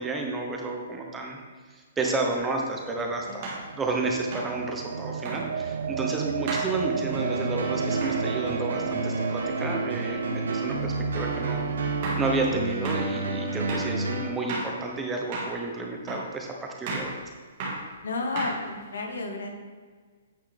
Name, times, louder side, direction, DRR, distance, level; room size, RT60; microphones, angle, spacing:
voice 1, 0.0-1.4 1.7-17.2, right 3 dB, 5° right, 1 dB, 0.5 m, -31 dB
sound 1, 2.3-2.5 3.4-3.7 4.3-4.6 5.2-5.4 6.5-6.7 8.0-8.2 11.3-11.4 12.0-12.3 12.8-13.1 13.7-13.9 14.5-14.7 15.3-15.6 16.1-16.3 16.9-17.1 17.6-17.9 18.4-18.9, right 2 dB, 30° right, 1.6 m, -33 dB
sound 2, 2.8-12.9, right 7 dB, 65° right, 0.3 m, -34 dB
voice 2, 3.0-3.6 18.0-19.5, left 3 dB, 90° left, 3 dB, 1.4 m, -33 dB
sound 3, 7.1-14.3, right 3 dB, 90° right, 0.9 m, -30 dB
8.7 x 5.9 x 3.4 m, 1.5 s
hypercardioid pair, 180°, 0 cm